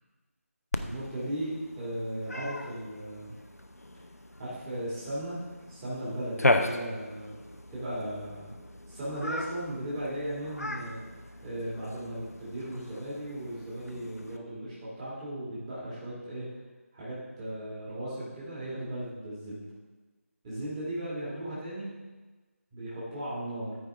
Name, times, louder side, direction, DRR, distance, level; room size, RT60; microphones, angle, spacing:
Cat, 0.7-14.4, left 2 dB, 85° left, 0.7 m, -36 dB
voice 1, 0.8-3.3 4.4-5.4 5.7-7.3 7.7-8.5 8.9-11.0 11.4-16.5 16.9-19.6 20.4-21.9 22.7-23.7, right 1 dB, 15° right, -9 dB, 2.1 m, -36 dB
13.5 x 4.9 x 3.5 m, 1.3 s
figure-of-eight pair, 165°, 8 cm